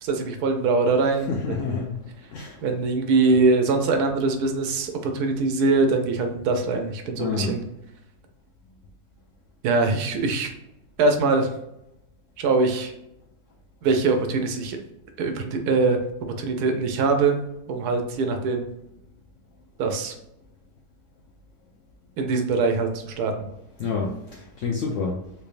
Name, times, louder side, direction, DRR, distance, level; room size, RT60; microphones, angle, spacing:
voice 1, 0.0-1.9 2.6-7.6 9.6-10.5 11.0-11.5 12.4-12.9 13.8-14.8 15.2-16.0 16.4-17.4 17.7-18.7 19.8-20.1 22.2-23.5, right 3 dB, 75° right, 5 dB, 1.1 m, -23 dB
voice 2, 1.3-2.0 2.3-2.6 7.2-7.5 23.8-25.3, left 4 dB, 70° left, 0 dB, 0.7 m, -28 dB
3.6 x 3.3 x 2.5 m, 0.82 s
omnidirectional pair, 1.7 m